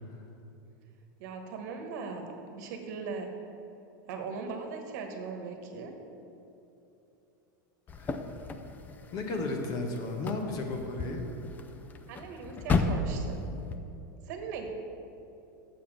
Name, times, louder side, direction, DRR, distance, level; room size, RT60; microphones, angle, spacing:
voice 1, 1.2-3.3 4.1-5.9 12.1-13.4 14.3-14.7, right 5 dB, 60° right, 4 dB, 1.2 m, -39 dB
sound 1, 7.9-13.8, left 3 dB, 15° left, 0.4 m, -34 dB
voice 2, 9.1-11.3, left 2 dB, 35° left, 3 dB, 1.1 m, -34 dB
7.1 x 7.0 x 6.1 m, 2.9 s
supercardioid pair, 150°, 11 cm